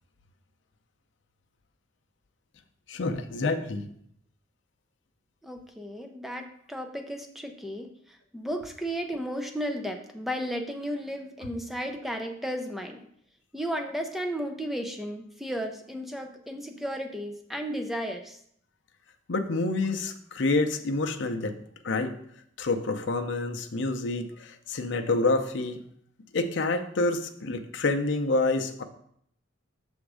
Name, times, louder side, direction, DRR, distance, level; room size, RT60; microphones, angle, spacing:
voice 1, 2.9-3.9 19.3-21.6 21.8-22.2 22.6-25.8 26.3-28.8, left 2 dB, 65° left, 5 dB, 0.6 m, -28 dB
voice 2, 5.4-13.0 13.5-18.4, equal, ahead, 4 dB, 0.5 m, -34 dB
6.2 x 3.6 x 4.8 m, 0.68 s
head